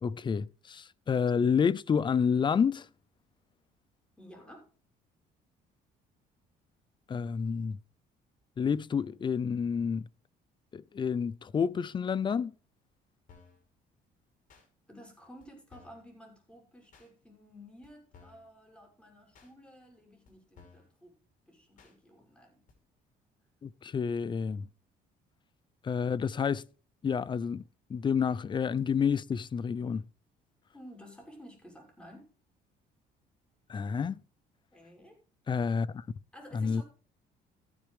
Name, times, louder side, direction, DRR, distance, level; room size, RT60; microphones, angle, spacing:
voice 1, 0.0-2.9 7.1-7.8 8.6-10.1 10.7-12.5 23.6-24.7 25.8-26.6 27.0-27.6 27.9-30.0 33.7-34.2 35.5-36.0 36.5-36.8, left 6 dB, 30° left, 0.5 m, -29 dB
voice 2, 4.2-4.7 14.9-21.1 21.5-22.6 30.7-32.3 34.7-35.2 36.3-36.8, equal, 5° left, 6.3 m, -53 dB
sound 1, 13.3-13.6 14.5-14.7 15.4-15.5 15.7-16.1 16.9-17.1 17.8-17.9 18.1-18.5 19.3-19.5 20.2-20.3 20.6-20.9 21.8-21.9 22.7-22.8, left 5 dB, 50° left, 5.3 m, -57 dB
14.0 x 10.5 x 3.3 m
cardioid pair, 110°, 17 cm